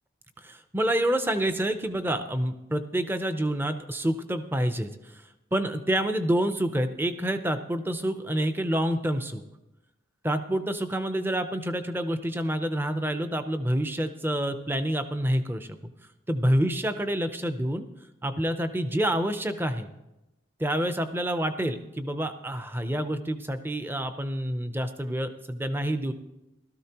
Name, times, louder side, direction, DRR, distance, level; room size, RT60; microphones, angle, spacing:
voice 1, 0.4-5.2 5.5-9.4 10.2-15.7 16.3-17.9 18.2-19.9 20.6-26.1, right 1 dB, 10° right, 9 dB, 0.5 m, -28 dB
17.0 x 13.0 x 2.9 m, 0.94 s
head